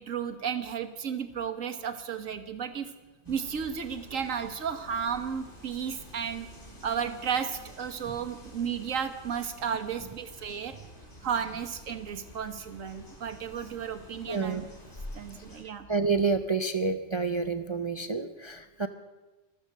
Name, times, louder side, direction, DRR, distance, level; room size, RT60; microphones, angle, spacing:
voice 1, 0.0-2.9 3.3-6.5 6.8-10.8 11.2-14.6 15.1-15.9, right 7 dB, 85° right, 9 dB, 1.6 m, -33 dB
sound 1, 3.2-15.6, equal, 40° left, 4.0 m, -49 dB
voice 2, 14.3-14.6 15.9-18.9, right 4 dB, 35° right, 8 dB, 0.5 m, -28 dB
15.0 x 13.0 x 6.6 m, 1.1 s
omnidirectional pair, 1.3 m